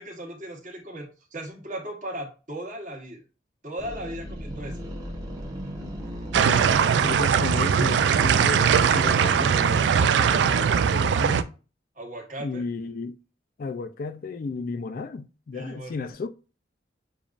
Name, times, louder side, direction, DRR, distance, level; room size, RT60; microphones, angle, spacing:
voice 1, 0.0-3.2 3.6-4.8 12.0-12.6 15.5-16.0, right 1 dB, 45° right, 1.2 m, -37 dB
sound 1, 3.8-11.0, equal, 20° right, 0.9 m, -37 dB
voice 2, 6.3-11.5 12.4-13.2 13.6-16.3, left 4 dB, 50° left, 0.3 m, -34 dB
sound 2, 6.3-11.4, right 7 dB, 75° right, 0.3 m, -20 dB
6.9 x 2.4 x 2.4 m
head